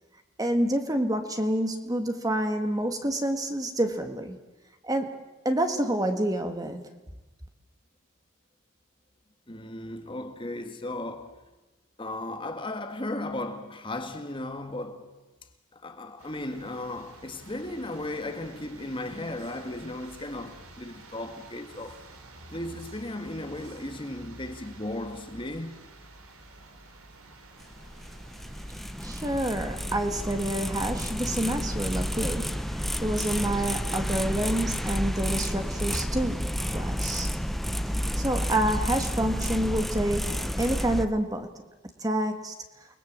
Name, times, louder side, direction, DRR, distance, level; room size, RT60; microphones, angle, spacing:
voice 1, 0.4-4.4 4.8-5.2 5.4-6.8 29.0-37.3 38.1-41.5 42.0-42.5, right 1 dB, 15° right, 1.5 m, -28 dB
voice 2, 9.5-11.4 12.0-15.1 15.7-22.0 22.5-25.9, left 1 dB, 25° left, 1.8 m, -36 dB
sound 1, 16.2-32.6, right 2 dB, 85° right, 3.8 m, -50 dB
sound 2, 27.6-41.0, equal, ahead, 0.8 m, -31 dB
29.5 x 20.5 x 7.5 m
head